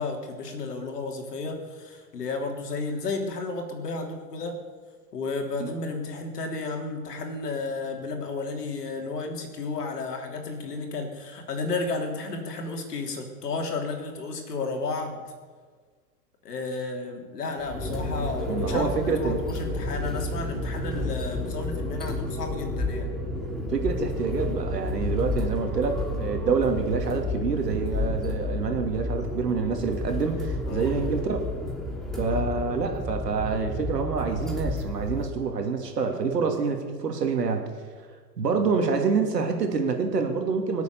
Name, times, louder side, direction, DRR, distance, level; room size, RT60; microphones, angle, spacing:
voice 1, 0.0-4.6 5.1-15.2 16.4-23.1 30.7-30.9 32.2-32.6, left 3 dB, 75° left, 3 dB, 3.6 m, -32 dB
sound 1, 17.6-35.2, left 1 dB, ahead, 2.9 m, -31 dB
voice 2, 18.5-19.4 23.7-31.4 32.1-37.7 38.4-40.8, right 5 dB, 80° right, 4 dB, 2.8 m, -27 dB
24.5 x 8.3 x 7.0 m, 1.5 s
hypercardioid pair, 100°, 48 cm